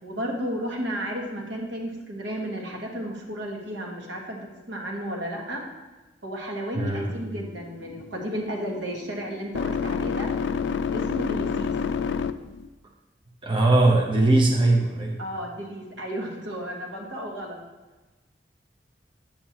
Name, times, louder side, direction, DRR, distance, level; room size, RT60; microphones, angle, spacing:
voice 1, 0.0-4.4 4.7-5.6 6.2-10.3 10.9-11.7 15.2-17.6, equal, 80° right, 0 dB, 1.5 m, -33 dB
voice 2, 6.7-7.1 13.4-15.2, right 2 dB, 30° right, -1 dB, 0.8 m, -20 dB
sound 1, 6.8-12.7, left 6 dB, 70° left, 0.3 m, -30 dB
8.7 x 7.4 x 2.9 m, 1.2 s
head